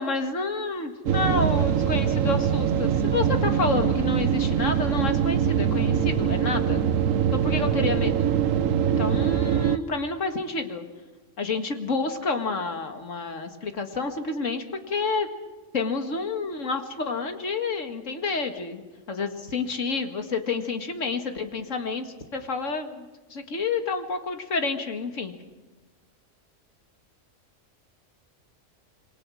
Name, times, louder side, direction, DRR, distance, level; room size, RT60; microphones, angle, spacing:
voice 1, 0.0-6.8 7.3-8.3 9.0-10.8 11.4-15.3 15.7-18.8 19.1-25.3, left 4 dB, 70° left, 6 dB, 2.2 m, -29 dB
sound 1, 1.1-9.8, right 8 dB, 80° right, 1.3 m, -23 dB
27.5 x 23.5 x 6.3 m, 1.2 s
omnidirectional pair, 1.4 m